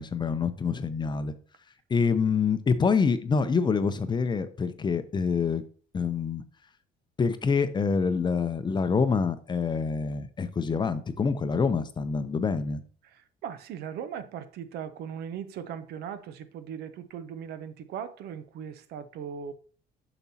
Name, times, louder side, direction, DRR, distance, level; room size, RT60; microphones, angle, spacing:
voice 1, 0.0-1.3 1.9-5.6 5.9-6.4 7.2-12.8, left 5 dB, 25° left, 0.6 m, -26 dB
voice 2, 13.4-19.5, right 8 dB, 75° right, 0.7 m, -38 dB
6.9 x 6.0 x 2.8 m
cardioid pair, 110°, 17 cm